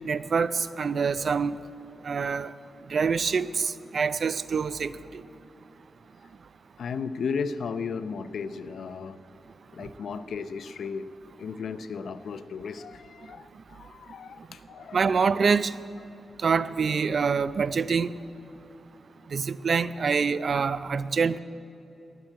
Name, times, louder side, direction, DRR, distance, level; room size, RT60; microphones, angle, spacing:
voice 1, 0.1-1.5 2.0-2.5 2.9-4.9 14.9-15.7 16.4-18.1 19.3-21.4, right 5 dB, 50° right, 15 dB, 0.4 m, -25 dB
voice 2, 6.8-9.2 9.7-11.1 11.4-15.2 16.1-16.2, left 5 dB, 75° left, 12 dB, 0.6 m, -35 dB
19.0 x 7.4 x 9.0 m, 2.9 s
wide cardioid pair, 135°, 0 cm